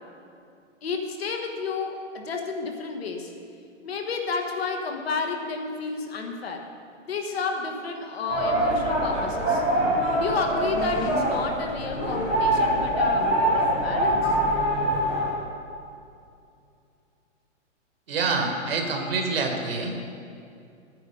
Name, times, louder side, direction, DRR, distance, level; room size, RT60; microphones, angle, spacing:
voice 1, 0.8-3.3 3.8-6.7 7.1-9.6 10.1-14.4, left 4 dB, 50° left, 3 dB, 1.4 m, -31 dB
sound 1, 8.3-15.3, right 1 dB, 5° left, 0.5 m, -24 dB
voice 2, 18.1-20.0, right 4 dB, 50° right, 3 dB, 1.6 m, -26 dB
10.5 x 9.3 x 5.4 m, 2.5 s
hypercardioid pair, 170°, 38 cm